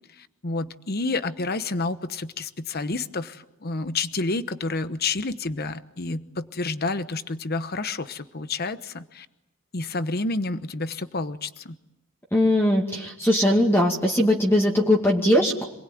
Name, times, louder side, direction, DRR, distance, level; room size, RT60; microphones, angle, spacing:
voice 1, 0.2-9.3 9.7-11.8, left 3 dB, 50° left, 11 dB, 1.1 m, -29 dB
voice 2, 12.3-15.6, left 1 dB, 10° left, -1 dB, 2.4 m, -20 dB
27.5 x 20.5 x 9.3 m, 0.92 s
head